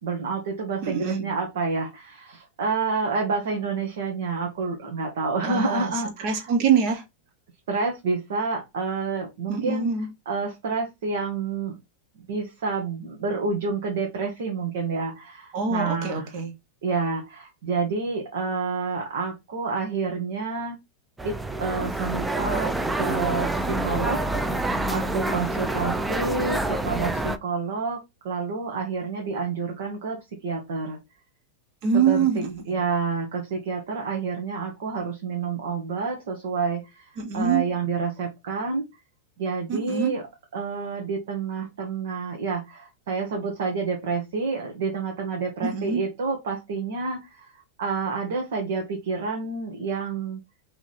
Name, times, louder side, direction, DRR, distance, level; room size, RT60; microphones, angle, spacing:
voice 1, 0.0-6.4 7.7-9.9 10.2-11.8 12.3-16.3 16.8-20.8 21.2-21.3 21.6-28.0 28.2-31.0 32.1-32.3 32.7-38.8 39.4-40.2 40.5-50.4, right 4 dB, 75° right, 1.4 m, -29 dB
voice 2, 0.8-1.3 5.4-5.9 6.2-7.0 9.5-10.1 15.5-16.5 31.8-32.6 37.2-37.7 39.7-40.2 45.6-46.0, right 6 dB, 50° right, 1.4 m, -24 dB
sound 1, 21.2-27.4, right 2 dB, 10° right, 0.4 m, -27 dB
3.5 x 3.1 x 4.2 m
hypercardioid pair, 120°, 0 cm